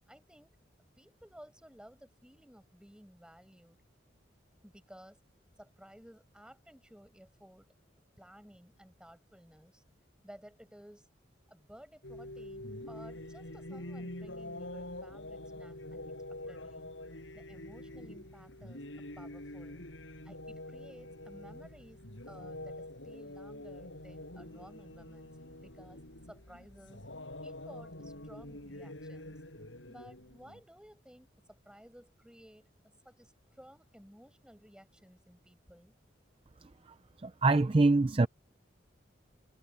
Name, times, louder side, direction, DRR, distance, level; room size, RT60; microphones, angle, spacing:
voice 1, 0.1-0.5 1.0-3.8 4.6-5.2 5.6-7.7 8.2-9.8 10.2-11.1 11.5-16.1 16.5-16.9 17.3-18.8 19.2-19.9 20.2-22.0 22.3-25.4 25.6-26.0 26.3-27.0 27.4-29.4 29.9-32.7 33.0-35.9, equal, 5° right, 5.6 m, -56 dB
sound 1, 12.0-30.6, left 1 dB, 80° left, 6.2 m, -46 dB
voice 2, 37.2-38.3, right 3 dB, 30° right, 0.5 m, -24 dB
head